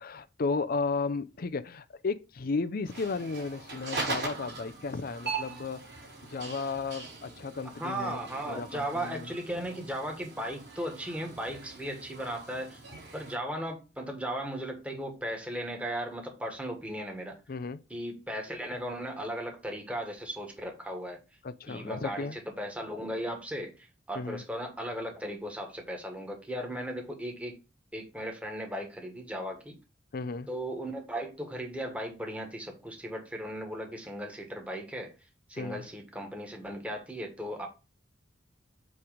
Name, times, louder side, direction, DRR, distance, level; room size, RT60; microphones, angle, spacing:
voice 1, 0.0-5.8 6.3-8.2 8.5-9.3 17.5-17.8 21.4-22.4 24.2-24.4 30.1-30.5 35.6-35.8, left 4 dB, 55° left, 0.5 m, -34 dB
sound 1, 2.9-13.4, right 3 dB, 60° right, 4.0 m, -41 dB
voice 2, 7.8-12.8 13.1-17.4 17.9-21.2 21.7-27.6 27.9-29.7 30.5-35.1 35.5-37.7, equal, 5° right, 1.6 m, -36 dB
8.5 x 3.3 x 5.0 m
head